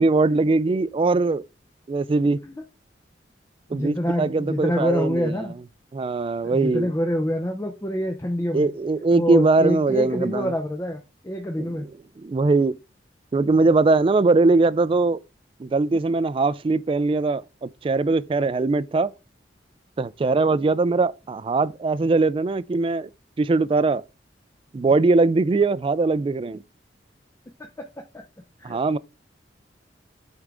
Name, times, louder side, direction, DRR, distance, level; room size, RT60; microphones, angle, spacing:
voice 1, 0.0-1.4 1.9-2.4 3.7-5.4 5.9-6.9 8.5-10.5 11.6-11.9 12.2-12.7 13.3-15.2 15.6-19.1 20.0-23.1 23.4-24.0 24.7-26.6 28.6-29.0, right 3 dB, 30° right, 0.3 m, -21 dB
voice 2, 3.7-5.5 6.4-8.7 9.1-11.0 11.2-11.9 28.1-28.2 28.6-28.8, equal, 15° left, 0.6 m, -26 dB
8.2 x 3.7 x 3.4 m
head